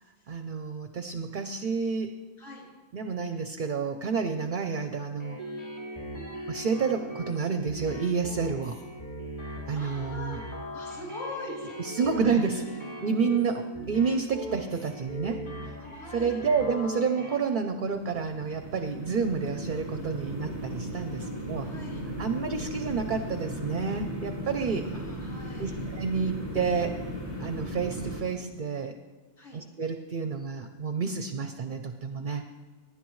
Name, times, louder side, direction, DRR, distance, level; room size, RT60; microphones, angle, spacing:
voice 1, 0.3-2.1 2.9-5.4 6.5-8.8 9.7-10.4 11.8-12.6 13.0-15.4 16.1-21.7 22.2-24.9 25.6-27.0 27.4-28.9 29.5-32.4, right 5 dB, 50° right, 7 dB, 0.7 m, -29 dB
sound 1, 5.2-17.4, equal, 30° left, 2.7 m, -40 dB
voice 2, 9.7-10.4 10.7-12.8 15.8-16.4 21.2-21.3 21.6-22.0 24.9-25.8 29.4-29.6, left 2 dB, 55° left, -5 dB, 3.9 m, -43 dB
sound 2, 17.7-28.2, equal, 75° left, 4.0 m, -37 dB
19.0 x 10.5 x 3.1 m, 1.3 s
omnidirectional pair, 1.4 m